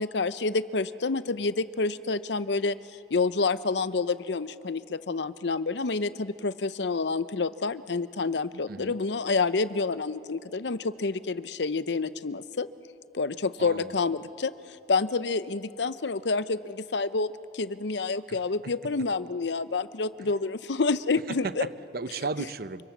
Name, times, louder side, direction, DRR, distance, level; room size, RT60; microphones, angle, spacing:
voice 1, 0.0-2.8 3.1-12.7 13.1-14.5 14.9-21.7, left 4 dB, 75° left, 15 dB, 0.7 m, -28 dB
voice 2, 13.6-14.0 18.3-18.4 20.2-20.3 21.3-22.8, right 4 dB, 55° right, 13 dB, 0.8 m, -35 dB
29.5 x 25.5 x 7.2 m, 3.0 s
head